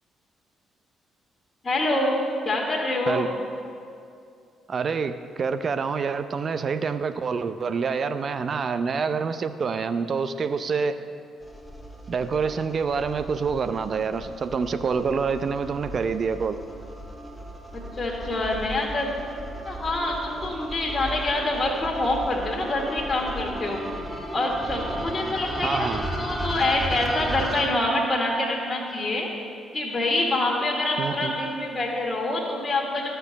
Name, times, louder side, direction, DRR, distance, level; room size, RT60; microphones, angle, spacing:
voice 1, 1.6-3.4 17.7-19.1 19.6-23.8 24.3-29.3 29.7-33.1, left 2 dB, 35° left, -3 dB, 2.0 m, -26 dB
voice 2, 4.7-11.0 12.1-16.6 25.6-26.1 31.0-31.3, right 5 dB, 50° right, 10 dB, 0.6 m, -27 dB
sound 1, 11.4-27.7, right 1 dB, ahead, 2.0 m, -35 dB
11.5 x 6.8 x 6.7 m, 2.4 s
hypercardioid pair, 45°, 0 cm